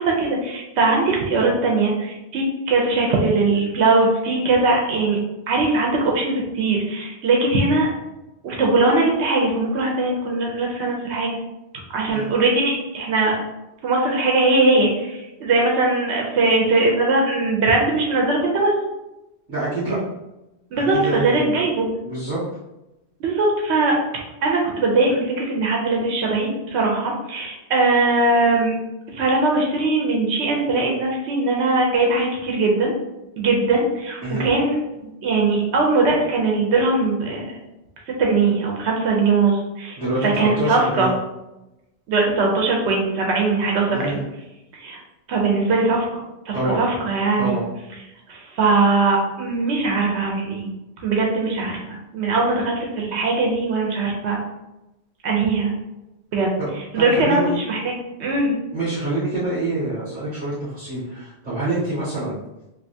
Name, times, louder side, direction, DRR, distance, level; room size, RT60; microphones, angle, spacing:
voice 1, 0.0-5.2 5.5-7.9 8.4-11.4 11.9-13.4 13.8-18.7 20.7-21.9 23.2-24.0 24.4-28.8 29.1-32.9 33.4-37.5 38.2-41.1 42.1-44.2 44.7-45.0 45.3-47.6 48.3-50.7 51.0-54.4 55.2-55.7 56.3-56.5 56.9-58.6, right 3 dB, 90° right, -1 dB, 0.9 m, -20 dB
voice 2, 19.5-20.0 20.9-21.6 22.0-22.4 34.2-34.5 40.0-41.1 43.9-44.2 46.5-46.8 47.4-47.6 56.6-56.7 56.9-57.6 58.7-62.4, right 2 dB, 45° right, -13 dB, 1.7 m, -26 dB
3.3 x 2.8 x 2.6 m, 0.96 s
omnidirectional pair, 1.1 m